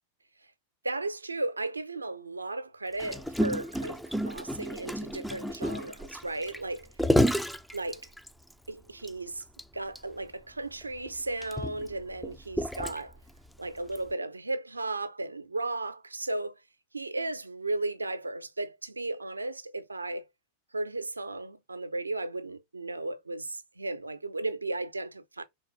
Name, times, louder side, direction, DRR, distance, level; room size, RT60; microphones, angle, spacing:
voice 1, 0.8-6.9 7.7-8.1 8.7-9.4 9.7-13.2 13.6-16.6 16.9-20.2 20.7-25.4, right 2 dB, 80° right, 0.5 m, -35 dB
Gurgling, 3.0-8.5 9.0-9.1 9.4-9.6 10.0-10.1 10.8-13.3 14.0-14.1, equal, ahead, 0.3 m, -30 dB
4.3 x 3.3 x 3.0 m
figure-of-eight pair, 90°, 0 cm